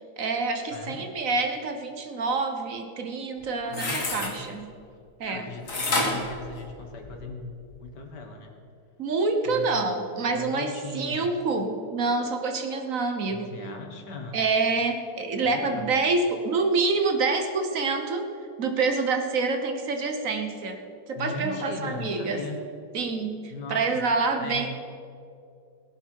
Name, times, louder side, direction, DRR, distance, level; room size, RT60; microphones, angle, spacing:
voice 1, 0.0-4.7 5.2-5.5 9.0-13.6 14.3-18.3 18.6-22.4 22.9-24.7, right 3 dB, 55° right, 6 dB, 1.3 m, -27 dB
voice 2, 0.7-1.1 3.7-4.6 5.2-8.6 9.5-10.0 10.3-11.3 13.3-14.4 15.4-15.9 21.1-22.6 23.5-24.1 24.4-24.7, left 3 dB, 85° left, 4 dB, 2.1 m, -39 dB
sound 1, 3.4-4.3 5.7-7.2 7.7-7.8, left 2 dB, 50° left, 2.5 m, -28 dB
17.0 x 11.0 x 4.7 m, 2.5 s
omnidirectional pair, 1.8 m